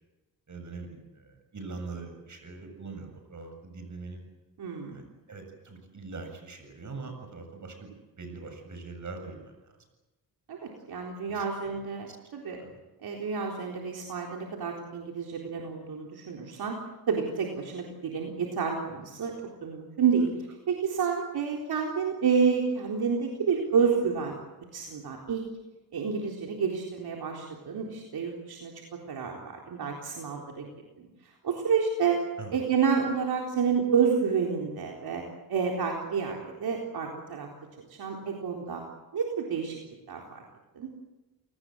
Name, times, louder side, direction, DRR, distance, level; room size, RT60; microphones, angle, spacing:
voice 1, 0.5-4.2 4.9-9.7 11.3-11.8 12.1-12.2 12.6-12.7 32.4-32.5, right 4 dB, 50° right, 6 dB, 7.6 m, -42 dB
voice 2, 4.6-5.0 10.5-12.6 13.0-16.8 17.1-19.3 19.6-20.3 20.7-24.4 24.7-25.5 25.9-28.7 29.1-30.7 31.0-31.1 31.4-32.2 32.5-35.2 35.5-37.5 38.0-38.8 39.1-39.8 40.1-40.4 40.8-40.9, right 6 dB, 75° right, 0 dB, 4.0 m, -29 dB
30.0 x 19.5 x 8.0 m, 1.1 s
cardioid pair, 90°, 38 cm